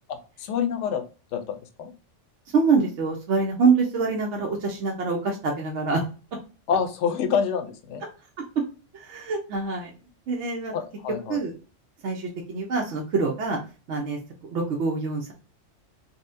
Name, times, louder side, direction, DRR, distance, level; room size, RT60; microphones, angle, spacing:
voice 1, 0.1-1.0 1.3-1.9 6.7-8.0 10.7-11.4, left 7 dB, 70° left, 6 dB, 0.9 m, -27 dB
voice 2, 2.5-6.0 8.4-8.5 8.9-9.9 10.3-10.7 11.3-11.5 12.0-13.6 13.9-15.3, right 4 dB, 70° right, 0 dB, 1.0 m, -25 dB
4.0 x 2.0 x 2.5 m, 0.34 s
omnidirectional pair, 1.3 m